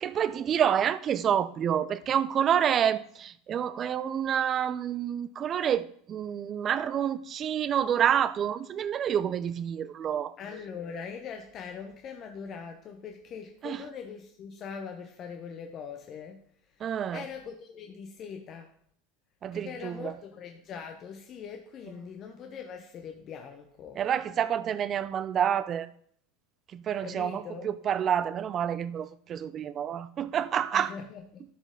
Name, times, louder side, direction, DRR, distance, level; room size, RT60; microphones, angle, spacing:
voice 1, 0.0-10.3 13.6-13.8 16.8-17.2 19.4-20.1 24.0-25.9 26.7-30.9, right 9 dB, 35° right, 0.5 m, -28 dB
voice 2, 10.4-16.4 16.7-18.7 19.5-24.0 27.0-27.7 30.7-31.4, left 6 dB, 40° left, 0.9 m, -42 dB
12.5 x 5.1 x 3.8 m
hypercardioid pair, 85°, 0 cm